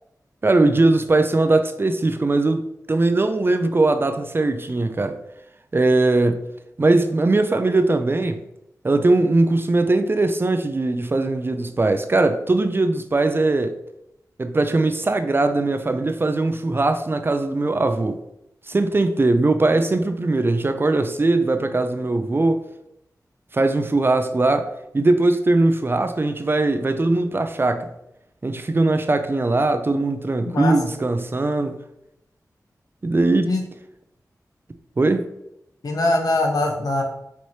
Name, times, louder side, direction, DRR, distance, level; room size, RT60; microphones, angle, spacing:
voice 1, 0.4-5.2 5.7-6.4 6.8-8.4 8.8-13.8 14.4-18.2 18.7-22.6 23.5-27.9 28.4-31.8 33.0-33.6 35.0-35.3, right 2 dB, 35° right, 0.4 m, -20 dB
voice 2, 30.4-30.7 33.4-33.6 35.8-37.0, left 2 dB, 75° left, 0.8 m, -22 dB
4.6 x 3.0 x 2.8 m
cardioid pair, 55°, 7 cm